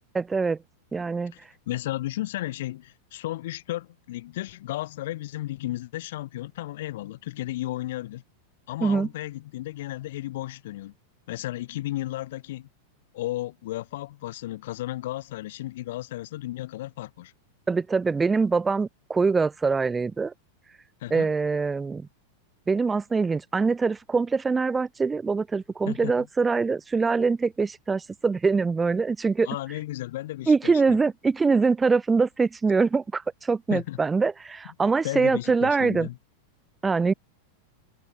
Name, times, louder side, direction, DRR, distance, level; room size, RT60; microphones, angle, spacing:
voice 1, 0.1-0.6 0.9-1.3 8.8-9.1 17.7-20.3 21.1-22.1 22.7-29.5 30.5-36.1 36.8-37.1, right 4 dB, 15° right, 0.5 m, -24 dB
voice 2, 1.7-8.2 8.7-10.9 11.3-12.7 13.1-17.3 21.0-21.3 25.9-26.1 29.4-31.0 33.7-34.0 35.0-36.2, left 16 dB, 55° left, 0.4 m, -34 dB
figure-of-eight pair, 90°, 0 cm